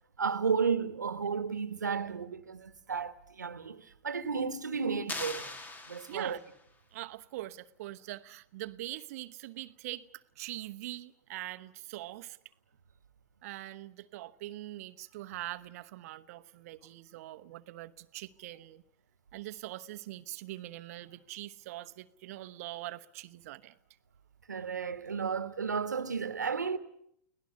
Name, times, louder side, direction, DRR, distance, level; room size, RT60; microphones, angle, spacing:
voice 1, 0.2-5.5 5.9-6.4 24.5-26.8, right 5 dB, 85° right, 1.5 m, -33 dB
sound 1, 5.1-6.6, left 2 dB, 20° left, 2.0 m, -41 dB
voice 2, 6.1-6.4 6.9-12.4 13.4-18.8 19.3-23.8, right 16 dB, 60° right, 1.0 m, -43 dB
25.0 x 18.0 x 9.4 m
figure-of-eight pair, 95°, 9 cm